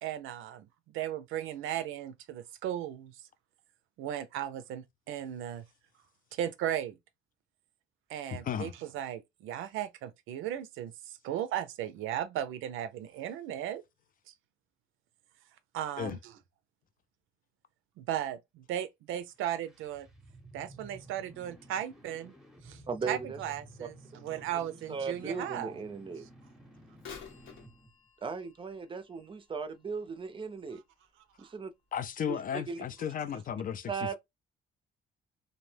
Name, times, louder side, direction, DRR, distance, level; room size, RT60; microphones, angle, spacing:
voice 1, 0.0-0.7 0.9-3.1 4.0-5.6 6.3-6.9 8.1-10.9 11.2-13.8 15.7-16.3 18.0-20.1 20.5-22.3 22.6-22.8 23.1-25.7 31.4-31.5, right 11 dB, 85° right, 0.4 m, -36 dB
voice 2, 8.3-8.7 16.0-16.2 31.9-33.9, left 8 dB, 45° left, 0.4 m, -34 dB
sound 1, 19.3-27.9, right 1 dB, ahead, 0.7 m, -54 dB
voice 3, 22.9-23.4 23.8-23.9 24.5-26.3 28.2-30.8 31.4-31.7 32.3-32.8 33.9-34.2, right 5 dB, 25° right, 0.5 m, -37 dB
Bird vocalization bird call bird song / Telephone, 27.0-30.8 31.3-31.4 32.2-32.3 33.0-33.1, left 6 dB, 75° left, 0.9 m, -52 dB
2.6 x 2.0 x 3.2 m
cardioid pair, 90°, 20 cm